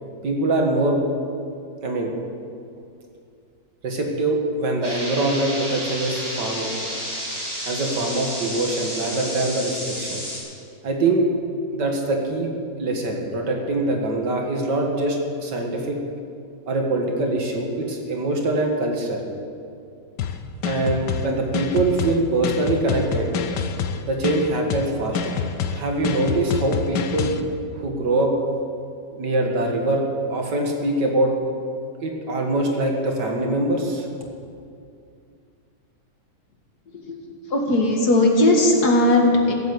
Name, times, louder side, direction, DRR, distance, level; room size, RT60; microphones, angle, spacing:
voice 1, 0.2-1.0 1.8-2.2 3.8-6.8 7.7-10.2 10.8-11.2 11.7-12.5 12.8-16.0 16.7-19.2 20.6-23.3 24.1-25.3 25.7-27.4 27.7-28.3 29.1-30.0 30.3-31.3 32.0-34.1, right 2 dB, 80° right, 2 dB, 2.4 m, -23 dB
sound 1, 4.8-10.4, equal, 15° right, 4.0 m, -31 dB
sound 2, 20.2-27.4, left 6 dB, 85° left, 1.4 m, -27 dB
voice 2, 36.9-39.5, left 1 dB, 65° left, 1 dB, 2.4 m, -18 dB
15.5 x 8.4 x 7.9 m, 2.4 s
omnidirectional pair, 1.8 m